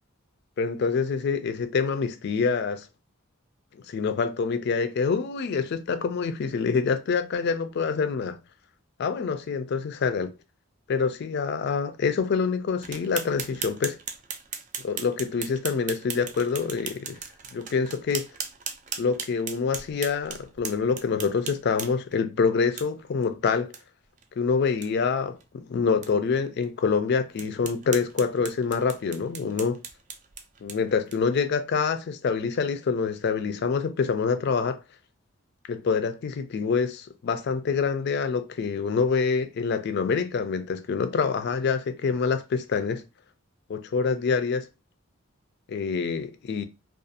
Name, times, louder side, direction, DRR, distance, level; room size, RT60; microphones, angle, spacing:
voice 1, 0.6-2.9 3.9-8.4 9.0-10.3 10.9-14.0 14.8-17.2 17.5-18.3 19.0-23.7 24.4-29.8 30.6-34.8 35.7-43.0 43.7-44.7 45.7-46.7, left 5 dB, 50° left, 0.3 m, -26 dB
sound 1, 12.8-22.1 22.8-22.9 23.2-23.3 23.7-23.8 24.2-24.3 24.7-24.9 25.4-25.5 26.0-26.1 26.6-26.7 27.4-31.4, right 7 dB, 35° right, 0.3 m, -38 dB
2.4 x 2.3 x 2.6 m
head